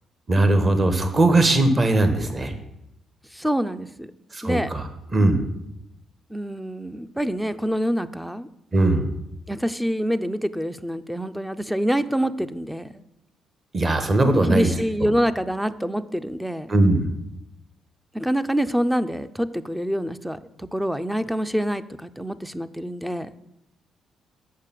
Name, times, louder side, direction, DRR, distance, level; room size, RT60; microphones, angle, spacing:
voice 1, 0.3-2.5 4.3-5.4 8.7-9.1 13.7-14.7 15.0-15.1 16.7-17.0, right 2 dB, 30° right, 8 dB, 1.3 m, -19 dB
voice 2, 3.3-4.1 4.4-4.7 6.3-8.5 9.5-12.9 14.5-16.7 18.1-23.3, equal, 5° right, 13 dB, 0.5 m, -26 dB
6.5 x 6.1 x 7.5 m, 0.84 s
cardioid pair, 90°, 0 cm